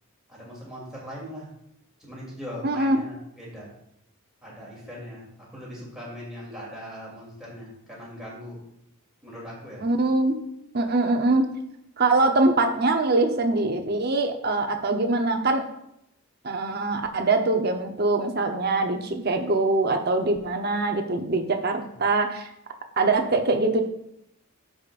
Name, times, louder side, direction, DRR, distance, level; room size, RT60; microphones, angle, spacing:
voice 1, 0.3-1.5 2.0-3.7 4.4-8.6 9.2-9.8, equal, ahead, -6 dB, 2.8 m, -40 dB
voice 2, 2.6-3.0 9.8-10.4 10.7-11.4 12.0-15.6 16.4-22.5 23.0-23.8, right 2 dB, 45° right, 5 dB, 0.8 m, -23 dB
15.0 x 5.2 x 2.5 m, 0.79 s
head